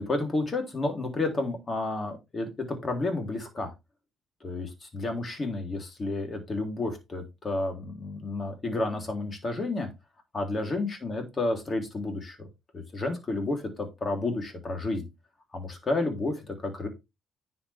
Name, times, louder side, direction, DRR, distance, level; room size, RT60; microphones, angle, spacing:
voice 1, 0.0-3.7 4.4-9.9 10.3-12.5 12.7-15.1 15.5-16.9, left 2 dB, 35° left, 4 dB, 3.4 m, -31 dB
10.5 x 6.0 x 3.5 m, 0.23 s
cardioid pair, 90°, 0 cm